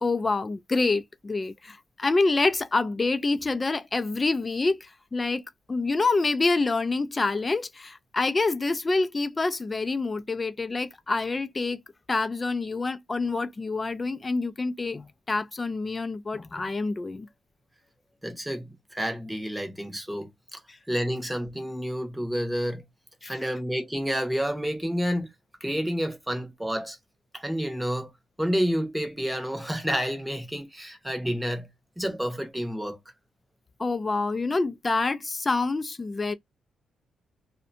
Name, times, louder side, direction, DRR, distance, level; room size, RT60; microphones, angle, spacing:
voice 1, 0.0-5.4 5.7-11.8 12.1-17.3 20.7-20.8 23.2-23.4 33.8-36.3, left 3 dB, 20° left, 0.3 m, -27 dB
voice 2, 18.2-20.6 20.9-22.8 23.3-25.3 25.6-27.0 27.3-28.1 28.4-31.7 32.0-33.0, equal, 5° right, 0.7 m, -29 dB
2.6 x 2.1 x 2.6 m
cardioid pair, 145°, 0 cm